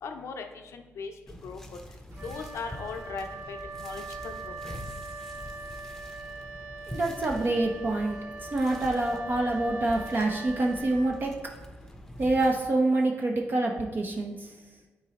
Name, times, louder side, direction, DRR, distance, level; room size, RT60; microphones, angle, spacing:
voice 1, 0.0-1.1 1.4-1.6 2.2-3.6 3.8-4.8, left 5 dB, 70° left, 6 dB, 0.6 m, -38 dB
sound 1, 1.3-12.7, equal, 5° left, 0.8 m, -45 dB
Wind instrument woodwind instrument, 2.1-11.6, right 3 dB, 80° right, 1.4 m, -42 dB
voice 2, 6.9-11.3 12.2-14.5, right 2 dB, 40° right, 1 dB, 0.8 m, -26 dB
9.5 x 4.0 x 2.9 m, 1.3 s
cardioid pair, 85°, 5 cm